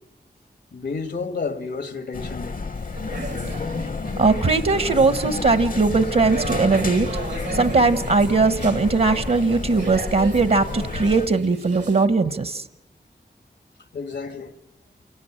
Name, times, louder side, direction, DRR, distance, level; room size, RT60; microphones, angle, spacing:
voice 1, 0.7-2.7 13.9-14.6, left 4 dB, 85° left, 1.8 m, -31 dB
sound 1, 2.1-11.3, left 4 dB, 55° left, 0.8 m, -30 dB
sound 2, 2.8-12.1, right 4 dB, 85° right, 1.8 m, -35 dB
voice 2, 4.2-7.1 7.5-12.6, right 3 dB, 60° right, 1.0 m, -19 dB
28.0 x 18.0 x 8.8 m
cardioid pair, 45°, 17 cm